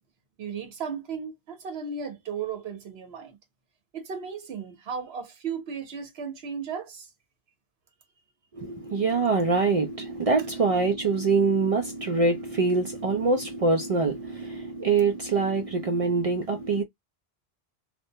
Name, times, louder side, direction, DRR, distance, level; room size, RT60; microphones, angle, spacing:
voice 1, 0.4-3.4 3.9-7.1, right 6 dB, 85° right, 1.1 m, -35 dB
voice 2, 8.5-16.8, right 4 dB, 55° right, 0.4 m, -24 dB
2.4 x 2.1 x 2.7 m
omnidirectional pair, 1.0 m